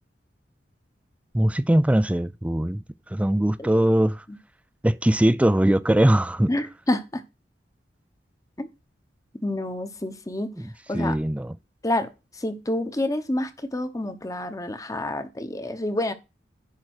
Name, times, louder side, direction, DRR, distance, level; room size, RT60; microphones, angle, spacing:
voice 1, 1.3-4.2 4.8-6.5 10.9-11.5, right 1 dB, 10° right, 0.3 m, -21 dB
voice 2, 6.5-7.2 8.6-8.7 9.4-10.5 10.9-11.2 11.8-16.1, left 1 dB, 20° left, 1.0 m, -28 dB
10.5 x 3.6 x 6.4 m
head